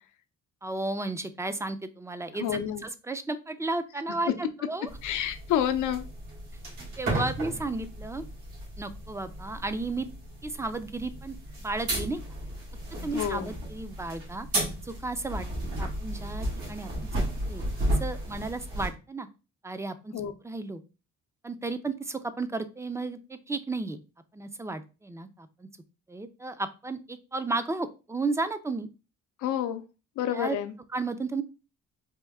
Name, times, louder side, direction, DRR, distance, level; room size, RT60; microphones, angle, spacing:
voice 1, 0.6-4.9 7.0-8.2 8.8-10.1 10.4-12.2 13.0-14.5 14.8-15.5 15.8-17.6 18.0-19.3 19.6-20.1 20.4-20.8 21.4-24.0 24.3-25.7 26.1-28.9 30.3-30.6 30.9-31.4, right 3 dB, 10° right, 11 dB, 0.4 m, -33 dB
voice 2, 2.4-2.8 5.0-6.0 13.1-13.5 20.1-20.3 29.4-29.8 30.2-30.7, left 10 dB, 80° left, 8 dB, 0.6 m, -28 dB
sound 1, 4.9-18.9, right 1 dB, 85° right, 2.3 m, -34 dB
4.3 x 2.2 x 3.5 m, 0.31 s
cardioid pair, 90°, 30 cm